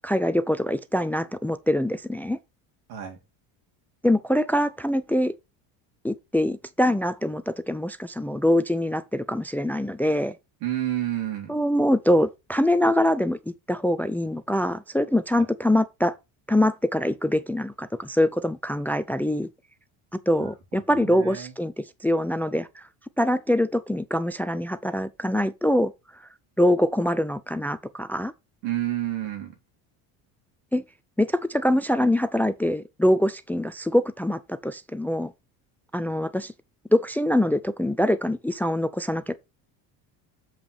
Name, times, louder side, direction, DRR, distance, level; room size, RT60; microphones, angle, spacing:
voice 1, 0.0-2.4 4.0-5.3 6.0-10.3 11.5-16.2 16.5-19.5 20.3-22.9 23.2-25.9 26.6-28.3 30.7-30.8 31.2-35.3 35.9-36.5 36.9-39.3, left 1 dB, 5° left, 0.5 m, -24 dB
voice 2, 10.6-11.5 15.3-15.5 20.4-21.5 28.6-29.5, right 13 dB, 80° right, 4.2 m, -30 dB
7.5 x 5.7 x 4.2 m
supercardioid pair, 105°, 43 cm